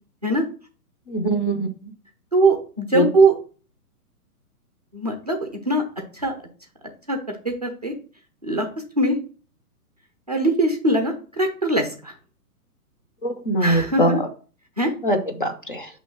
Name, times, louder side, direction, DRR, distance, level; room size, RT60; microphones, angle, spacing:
voice 1, 1.1-1.7 2.9-3.1 13.2-14.1 15.0-15.9, right 1 dB, 35° left, 7 dB, 0.5 m, -22 dB
voice 2, 2.3-3.4 4.9-5.8 6.1-6.3 7.1-7.9 8.4-8.7 9.0-9.2 10.3-12.1 13.6-14.2 14.8-14.9, right 2 dB, 25° right, 4 dB, 0.5 m, -21 dB
6.0 x 3.1 x 5.7 m, 0.38 s
hypercardioid pair, 170°, 46 cm